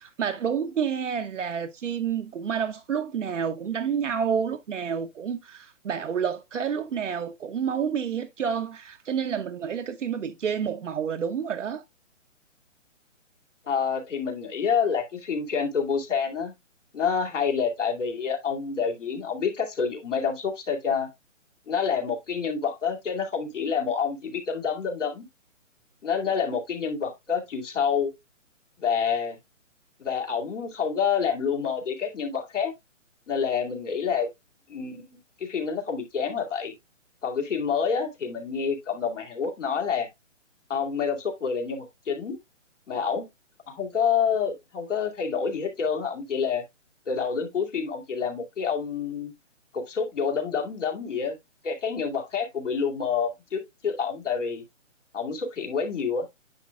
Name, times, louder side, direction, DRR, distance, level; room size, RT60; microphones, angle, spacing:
voice 1, 0.0-11.8, right 7 dB, 70° right, 0.8 m, -29 dB
voice 2, 13.7-16.5 16.9-21.1 21.7-25.3 26.0-28.1 28.8-29.4 30.0-32.7 33.3-34.3 34.7-36.7 37.2-40.1 40.7-42.4 42.9-43.3 43.7-46.6 47.1-49.3 49.7-51.4 51.6-54.6 55.1-56.3, left 6 dB, 70° left, 2.4 m, -28 dB
9.7 x 5.8 x 2.2 m
hypercardioid pair, 170°, 38 cm